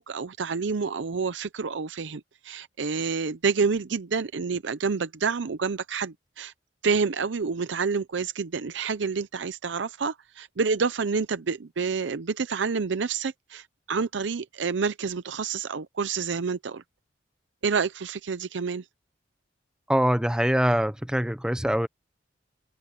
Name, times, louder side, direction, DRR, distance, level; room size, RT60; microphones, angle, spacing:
voice 1, 0.0-6.5 6.8-16.8 17.6-18.8, right 5 dB, 75° right, 0.6 m, -28 dB
voice 2, 19.9-21.9, equal, 5° right, 0.8 m, -23 dB
open air
head